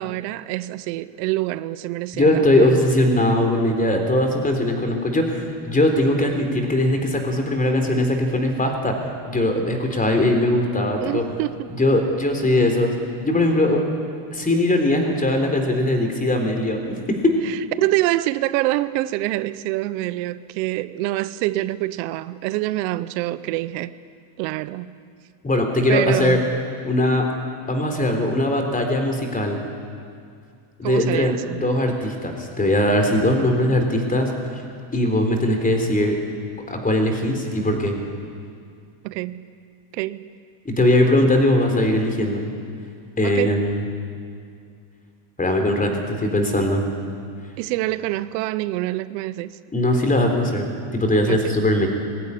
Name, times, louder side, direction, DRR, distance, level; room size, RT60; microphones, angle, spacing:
voice 1, 0.0-2.7 11.0-11.7 17.4-23.9 24.4-24.9 25.9-26.5 30.8-31.6 39.0-39.5 39.9-40.3 43.2-43.5 47.6-49.6 51.3-51.5, right 17 dB, 90° right, 0.9 m, -26 dB
voice 2, 2.1-9.0 9.3-11.2 11.8-12.9 13.2-13.8 14.3-17.3 25.4-26.4 26.9-27.3 27.7-29.6 30.8-34.3 34.9-36.2 36.7-37.9 40.7-42.5 43.2-43.8 45.4-46.8 49.7-51.9, left 1 dB, 15° left, 3.8 m, -20 dB
21.0 x 15.0 x 9.9 m
supercardioid pair, 115°, 50 cm